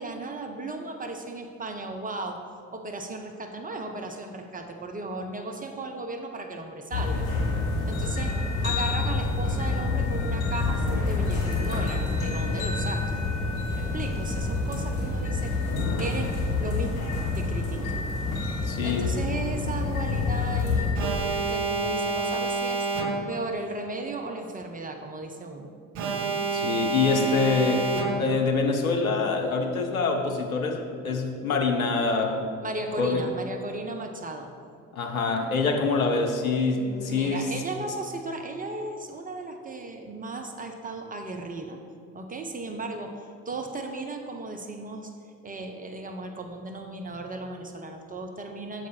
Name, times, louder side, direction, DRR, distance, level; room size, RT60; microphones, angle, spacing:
voice 1, 0.0-2.5 2.7-7.3 7.9-13.2 13.8-15.6 16.0-18.0 18.8-22.9 23.3-25.7 32.6-34.5 36.7-41.8 42.1-45.1 45.4-48.9, right 2 dB, 20° right, 4 dB, 0.5 m, -36 dB
sound 1, 6.9-20.9, left 3 dB, 70° left, 1.7 m, -27 dB
voice 2, 18.6-19.1 26.5-27.9 28.2-32.5 33.0-33.2 34.9-37.5, left 4 dB, 85° left, 3 dB, 0.6 m, -25 dB
Alarm, 20.9-23.5 25.9-28.5, right 3 dB, 65° right, 0.7 m, -28 dB
7.2 x 4.8 x 4.3 m, 2.4 s
figure-of-eight pair, 50°, 41 cm